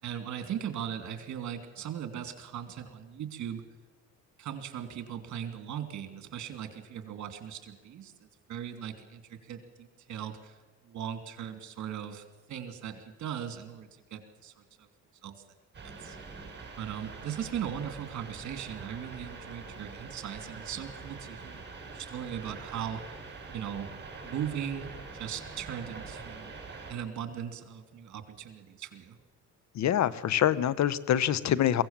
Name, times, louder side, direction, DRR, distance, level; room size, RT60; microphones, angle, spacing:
voice 1, 0.0-3.6 4.4-10.6 10.8-14.5 14.8-14.9 15.2-15.3 15.8-16.2 16.8-21.6 21.9-23.2 23.5-23.9 24.2-26.5 26.9-29.2, right 9 dB, 70° right, 8 dB, 2.7 m, -39 dB
sound 1, 15.7-26.9, right 4 dB, 35° right, 7.2 m, -44 dB
voice 2, 29.7-31.8, left 11 dB, 65° left, 18 dB, 0.9 m, -25 dB
22.5 x 16.5 x 7.4 m, 1.2 s
cardioid pair, 90°, 30 cm